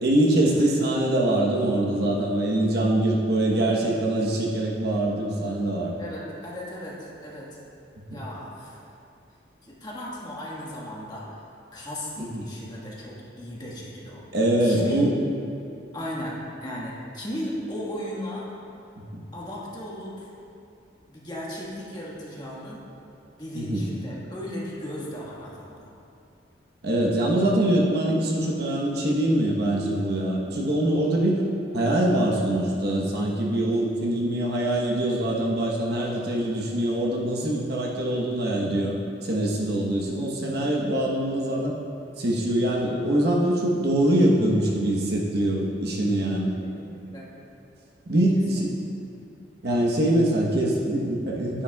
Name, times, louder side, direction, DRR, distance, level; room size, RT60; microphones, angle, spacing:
voice 1, 0.0-6.0 8.1-8.2 12.2-12.4 14.3-15.1 19.1-19.2 23.5-23.9 26.8-31.4 31.7-39.0 39.2-41.7 42.2-46.5 48.1-48.7 49.6-51.6, right 1 dB, 60° right, -2 dB, 1.1 m, -23 dB
voice 2, 6.0-7.6 8.1-8.8 9.6-11.3 11.7-14.2 14.6-15.0 15.9-18.5 19.3-20.3 21.1-22.8 23.4-25.9 46.6-47.3 48.5-48.6, equal, 25° left, -6 dB, 1.5 m, -36 dB
10.0 x 10.0 x 2.3 m, 2.6 s
head